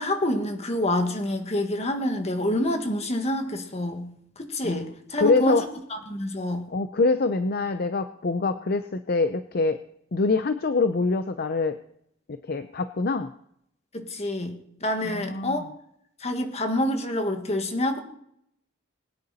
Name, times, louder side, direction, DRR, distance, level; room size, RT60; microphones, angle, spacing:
voice 1, 0.0-4.1 4.4-5.7 6.1-6.7 13.9-15.6 16.2-18.0, left 1 dB, 30° left, 5 dB, 1.8 m, -27 dB
voice 2, 5.2-5.6 6.7-9.8 10.1-11.8 12.3-13.3 15.0-15.6, left 3 dB, 50° left, 9 dB, 0.6 m, -25 dB
21.5 x 9.7 x 4.1 m, 0.72 s
head